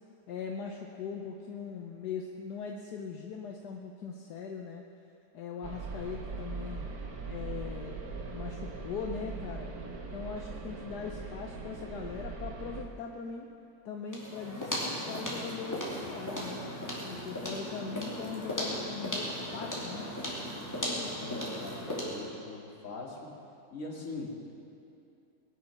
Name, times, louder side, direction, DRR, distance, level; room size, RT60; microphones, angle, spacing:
voice 1, 0.3-4.8 5.3-6.8 7.3-8.0 8.3-9.7 10.1-13.5 13.8-16.6 17.1-20.1, left 6 dB, 75° left, 2 dB, 1.4 m, -40 dB
sound 1, 5.6-12.8, right 4 dB, 65° right, 1.7 m, -40 dB
sound 2, 14.1-22.3, equal, 10° left, 2.6 m, -36 dB
voice 2, 21.2-23.3 23.7-24.4, left 3 dB, 50° left, -3 dB, 2.7 m, -41 dB
20.5 x 9.9 x 5.9 m, 2.7 s
omnidirectional pair, 1.7 m